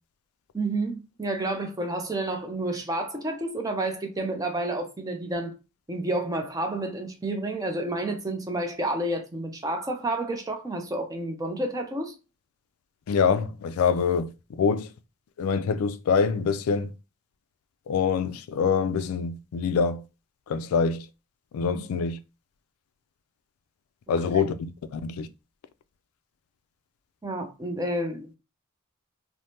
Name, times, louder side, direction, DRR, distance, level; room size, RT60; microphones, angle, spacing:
voice 1, 0.5-5.5 5.9-12.1 21.7-21.8 27.2-28.4, right 1 dB, 15° right, 0.5 m, -30 dB
voice 2, 13.1-14.3 14.6-14.9 15.4-16.9 17.9-20.0 20.5-21.0 21.5-22.2 24.1-25.3, left 5 dB, 85° left, 0.3 m, -25 dB
3.2 x 2.0 x 2.7 m
head